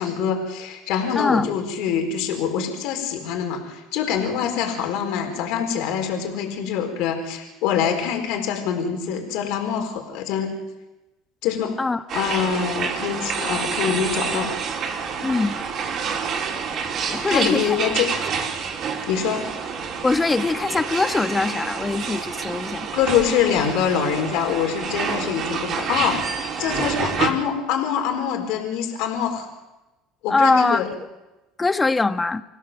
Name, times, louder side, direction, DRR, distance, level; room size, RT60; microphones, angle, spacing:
voice 1, 0.0-10.5 11.4-11.7 12.1-14.5 17.3-18.1 19.1-19.4 22.9-26.2 26.6-29.5 30.2-30.9, left 8 dB, 70° left, 4 dB, 4.5 m, -24 dB
voice 2, 1.2-1.5 11.8-12.0 15.2-15.6 17.1-17.8 20.0-22.9 30.3-30.8 31.6-32.4, left 3 dB, 20° left, 10 dB, 1.4 m, -22 dB
sound 1, 12.1-27.3, right 6 dB, 50° right, 4.5 m, -28 dB
26.5 x 16.5 x 7.7 m, 1.1 s
hypercardioid pair, 80°, 0 cm